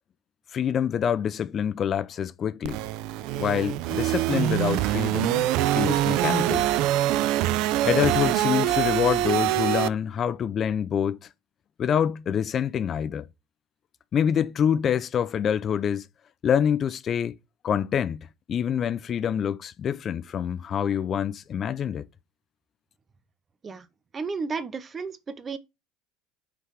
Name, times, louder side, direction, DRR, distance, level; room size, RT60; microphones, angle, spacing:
voice 1, 0.5-2.8 3.4-5.5 5.7-6.6 7.8-11.2 11.8-13.3 14.1-16.1 16.4-17.3 17.6-22.1, left 8 dB, 40° left, 0.5 m, -26 dB
sound 1, 2.6-9.9, right 13 dB, 65° right, 0.4 m, -24 dB
voice 2, 24.1-25.6, right 4 dB, 30° right, 0.7 m, -33 dB
5.7 x 3.8 x 4.6 m
supercardioid pair, 95°, 0 cm